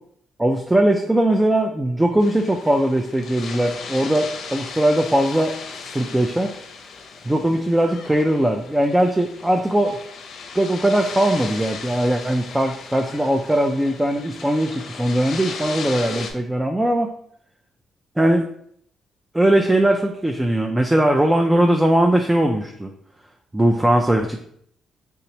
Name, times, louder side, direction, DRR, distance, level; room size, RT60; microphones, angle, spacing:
voice 1, 0.4-5.6 5.9-6.5 7.3-10.0 10.5-17.1 18.2-18.5 19.3-22.9 23.5-24.4, right 1 dB, 10° right, 3 dB, 0.3 m, -20 dB
sound 1, 2.2-16.3, left 5 dB, 65° left, 0.5 m, -37 dB
3.3 x 3.0 x 2.9 m, 0.67 s
cardioid pair, 90°, 0 cm